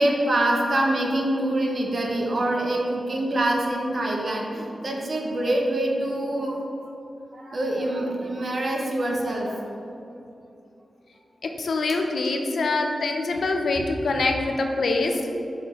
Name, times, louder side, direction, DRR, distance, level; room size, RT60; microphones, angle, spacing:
voice 1, 0.0-6.6 7.3-9.8 13.7-13.8, right 1 dB, 45° right, 0 dB, 0.9 m, -25 dB
voice 2, 11.4-15.3, left 3 dB, 70° left, 3 dB, 0.6 m, -25 dB
8.3 x 5.1 x 3.1 m, 2.7 s
wide cardioid pair, 160°, 0 cm